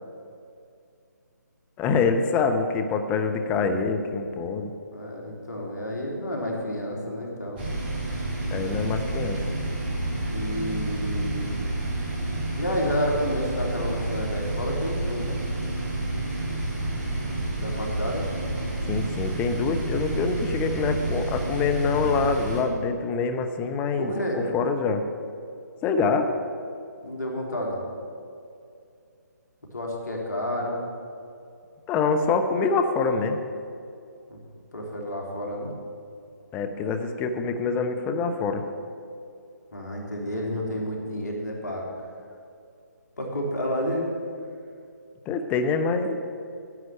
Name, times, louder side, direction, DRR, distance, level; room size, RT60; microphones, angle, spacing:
voice 1, 1.8-4.7 8.5-9.4 18.9-24.1 24.5-25.0 25.8-26.3 31.9-33.4 36.5-38.6 45.3-46.2, left 4 dB, 15° left, 6 dB, 0.8 m, -25 dB
voice 2, 4.9-7.6 10.3-11.6 12.6-15.4 17.6-18.3 24.0-24.4 27.0-27.8 29.7-30.8 34.3-34.4 34.7-35.7 39.7-41.9 43.2-44.0, equal, 70° left, -1 dB, 3.2 m, -30 dB
sound 1, 7.6-22.6, right 2 dB, 30° right, 3.4 m, -29 dB
10.5 x 7.8 x 8.9 m, 2.4 s
figure-of-eight pair, 145°, 10 cm